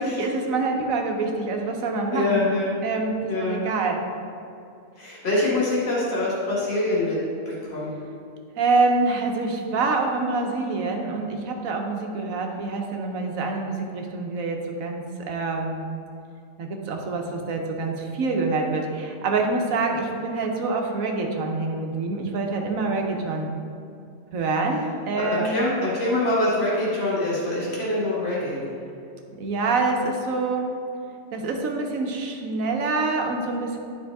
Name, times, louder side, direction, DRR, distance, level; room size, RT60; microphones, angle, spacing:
voice 1, 0.0-2.5 2.8-4.0 8.6-15.8 16.6-23.5 24.3-25.6 29.4-30.7 31.3-33.8, right 3 dB, 90° right, 2 dB, 1.3 m, -26 dB
voice 2, 2.1-2.8 3.3-3.7 5.0-7.2 7.5-8.0 25.2-28.6, left 2 dB, 50° left, -7 dB, 2.2 m, -24 dB
10.5 x 5.0 x 3.5 m, 2.5 s
omnidirectional pair, 1.4 m